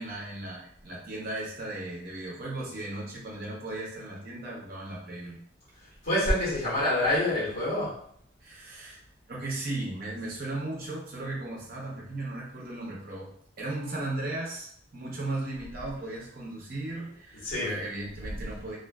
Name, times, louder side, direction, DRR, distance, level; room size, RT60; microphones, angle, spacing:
voice 1, 0.0-5.4 8.4-9.0 9.3-13.3 13.6-18.8, right 2 dB, 50° right, -3 dB, 0.7 m, -36 dB
voice 2, 6.0-8.0 17.4-17.8, left 1 dB, 90° left, -8 dB, 1.1 m, -26 dB
2.5 x 2.5 x 2.2 m, 0.64 s
head